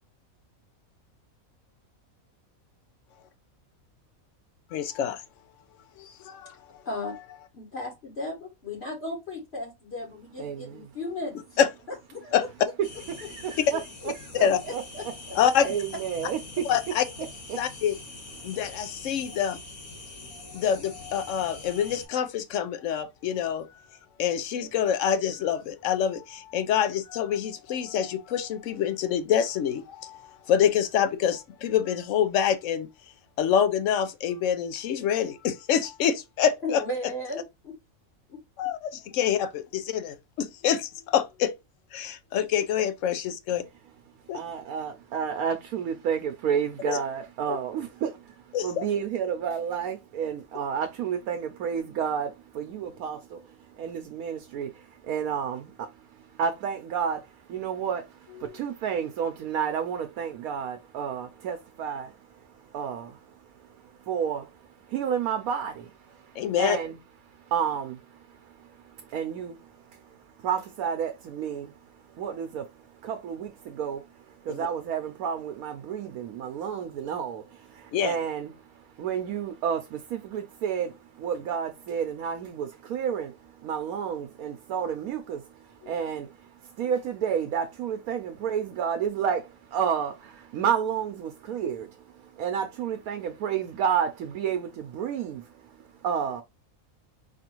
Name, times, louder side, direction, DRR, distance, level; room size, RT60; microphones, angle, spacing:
voice 1, 4.7-5.2 6.0-6.5 11.6-11.7 12.3-12.4 14.4-14.6 15.3-15.7 16.6-17.0 17.6-18.0 18.4-19.6 20.5-23.9 24.2-32.9 33.4-36.8 38.6-41.5 41.9-43.6 44.3-44.4 46.8-47.0 47.5-47.6 48.5-48.9 58.4-58.6 66.4-66.8 74.5-74.6 77.9-78.1 85.8-85.9, left 9 dB, 70° left, 0.9 m, -26 dB
voice 2, 6.8-7.1 7.5-11.4 12.1-12.3 14.0-15.7 36.6-37.7 38.3-38.4, left 2 dB, 50° left, 1.3 m, -36 dB
voice 3, 10.4-10.9 13.1-14.8 15.6-16.6 17.5-17.6 44.3-67.0 67.3-96.4, right 8 dB, 90° right, 1.1 m, -31 dB
sound 1, 12.8-22.1, left 2 dB, 85° left, 1.9 m, -44 dB
4.6 x 2.5 x 2.9 m
omnidirectional pair, 1.5 m